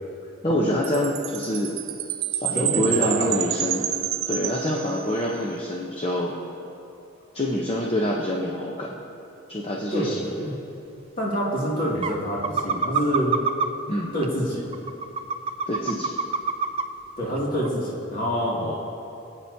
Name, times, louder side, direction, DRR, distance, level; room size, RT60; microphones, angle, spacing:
voice 1, 0.4-1.7 2.3-3.9 4.3-6.4 7.3-8.9 9.5-10.2 13.9-14.1 15.7-16.1 18.6-18.8, equal, 30° left, -2 dB, 0.8 m, -26 dB
Chime, 0.8-5.3, right 12 dB, 90° right, 0.5 m, -29 dB
voice 2, 2.5-3.4 9.9-10.5 11.2-13.4 14.1-14.7 17.2-18.6, equal, 45° left, -5 dB, 2.4 m, -26 dB
sound 1, 11.3-11.4 12.0-12.1 12.4-13.7 14.2-14.3 14.7-16.8 17.2-17.4 17.6-17.7, right 5 dB, 30° right, 0.3 m, -24 dB
23.0 x 8.9 x 2.8 m, 2.9 s
head